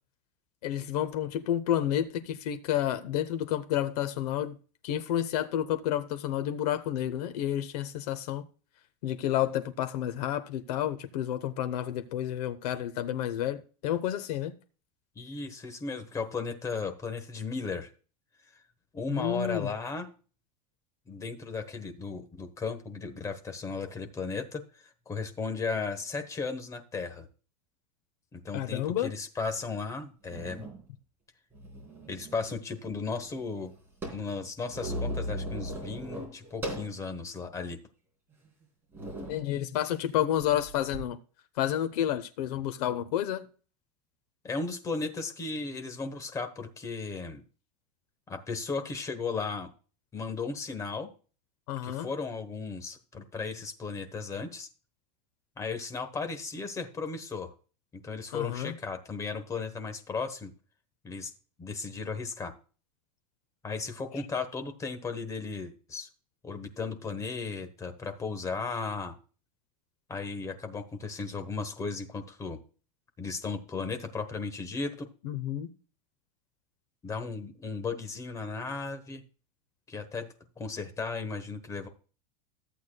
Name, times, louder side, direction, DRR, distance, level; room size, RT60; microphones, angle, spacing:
voice 1, 0.6-4.6 4.8-8.5 9.0-14.5 19.1-19.7 28.5-29.1 39.3-41.2 41.6-43.4 51.7-52.1 58.3-58.8 75.2-75.7, left 11 dB, 75° left, 0.9 m, -30 dB
voice 2, 15.1-17.9 18.9-20.1 21.1-27.3 28.3-30.7 32.1-33.7 34.1-37.8 44.4-47.4 48.3-49.7 50.1-51.1 51.8-54.7 55.6-57.5 57.9-60.5 61.0-61.3 61.6-62.5 63.6-66.1 66.4-69.1 70.1-72.6 73.2-75.1 77.0-79.2 79.9-80.3 80.6-81.9, left 4 dB, 15° left, 1.1 m, -35 dB
sound 1, 29.6-29.7 30.2-30.8 31.5-32.6 32.8-32.9 33.2-37.0 37.5-37.6 38.3-38.5 38.9-39.4 40.4-41.0, right 1 dB, 10° right, 3.4 m, -38 dB
14.0 x 8.2 x 2.3 m
supercardioid pair, 160°, 20 cm